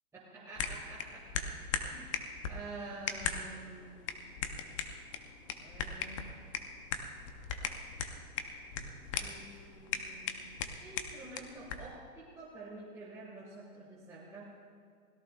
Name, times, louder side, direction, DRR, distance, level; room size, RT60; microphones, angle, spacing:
voice 1, 0.1-1.4 1.8-2.2 2.5-4.3 5.6-6.3 8.7-10.4 10.8-14.5, right 2 dB, 5° right, -7 dB, 1.7 m, -49 dB
sound 1, 0.6-11.9, left 6 dB, 20° left, 0.5 m, -39 dB
23.5 x 17.0 x 2.3 m, 2.1 s
hypercardioid pair, 150°, 44 cm